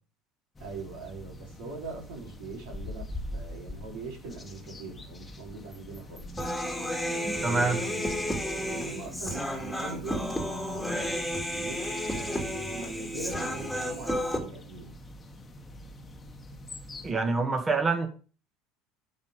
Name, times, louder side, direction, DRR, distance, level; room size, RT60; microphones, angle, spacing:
sound 1, 0.6-17.1, left 1 dB, 20° left, 1.4 m, -44 dB
voice 1, 0.6-3.0 3.3-6.3 7.4-8.1 8.6-10.4 10.7-11.1 11.5-14.9, right 3 dB, 65° right, 4.0 m, -41 dB
Human voice, 6.4-14.4, equal, ahead, 2.6 m, -32 dB
voice 2, 7.3-7.8 17.0-18.1, right 4 dB, 25° right, 2.0 m, -26 dB
8.9 x 5.8 x 5.1 m
hypercardioid pair, 70°, 0 cm